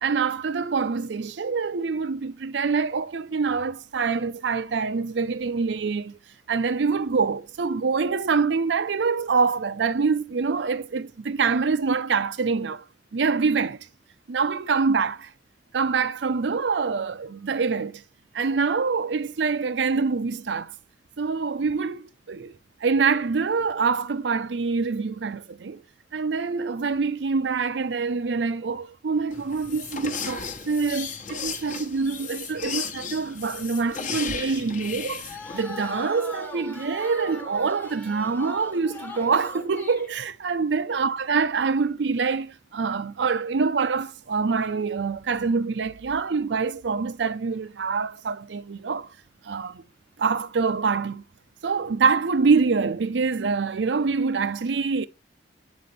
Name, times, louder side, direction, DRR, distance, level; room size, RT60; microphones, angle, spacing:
voice 1, 0.0-6.2 6.5-12.8 13.1-13.9 14.3-15.3 15.7-18.0 18.3-20.7 21.2-22.5 22.8-25.8 26.1-49.1 49.4-49.8 50.2-51.2 51.6-55.1, right 5 dB, 85° right, 0.5 m, -25 dB
sound 1, 29.3-35.6, left 6 dB, 45° left, 0.9 m, -35 dB
sound 2, 35.3-40.1, left 2 dB, 10° left, 0.9 m, -40 dB
8.5 x 4.2 x 3.3 m
head